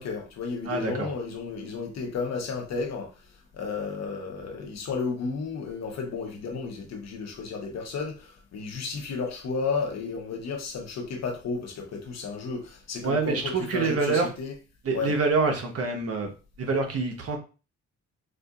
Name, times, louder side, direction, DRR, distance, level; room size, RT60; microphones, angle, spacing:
voice 1, 0.0-3.1 3.5-14.5 14.9-15.1, left 4 dB, 60° left, 3 dB, 1.1 m, -33 dB
voice 2, 0.7-1.1 13.0-14.3 14.8-17.4, right 4 dB, 50° right, 3 dB, 1.1 m, -26 dB
4.9 x 2.6 x 2.4 m, 0.34 s
cardioid pair, 90°, 30 cm